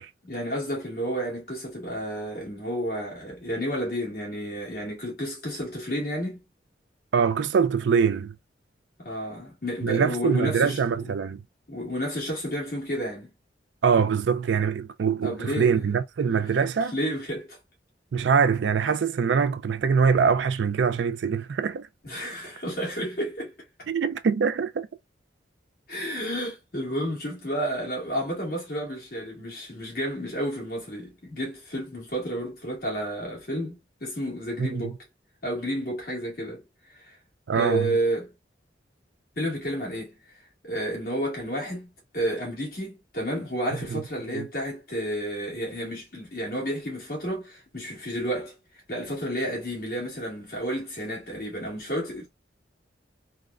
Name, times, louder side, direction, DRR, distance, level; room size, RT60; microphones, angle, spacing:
voice 1, 0.2-6.4 9.0-11.1 11.7-13.3 15.2-15.8 16.9-17.6 22.0-23.5 25.9-35.0 35.4-36.6 36.9-37.2 37.5-38.3 39.4-40.1 40.6-48.5 48.9-52.3, equal, 55° left, 1.7 m, -31 dB
voice 2, 7.1-8.3 9.8-11.4 13.8-17.0 18.1-21.9 23.9-24.9 34.6-34.9 37.5-37.9 43.9-44.0 44.3-44.5, right 6 dB, 80° right, 0.4 m, -23 dB
3.6 x 2.1 x 2.3 m
head